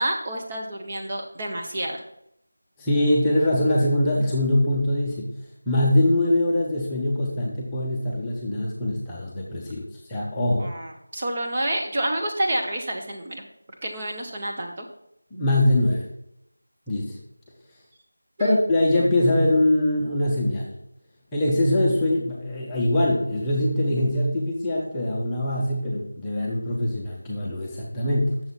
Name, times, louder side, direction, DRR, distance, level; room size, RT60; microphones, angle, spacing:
voice 1, 0.0-2.0 10.6-13.4 13.8-14.9 18.4-18.6, right 1 dB, 25° right, 1 dB, 0.8 m, -29 dB
voice 2, 2.8-5.3 5.7-10.7 15.3-16.1 16.9-17.2 18.4-20.7 21.3-28.4, left 1 dB, 5° left, -6 dB, 0.8 m, -23 dB
8.4 x 6.9 x 4.1 m, 0.76 s
figure-of-eight pair, 175°, 0 cm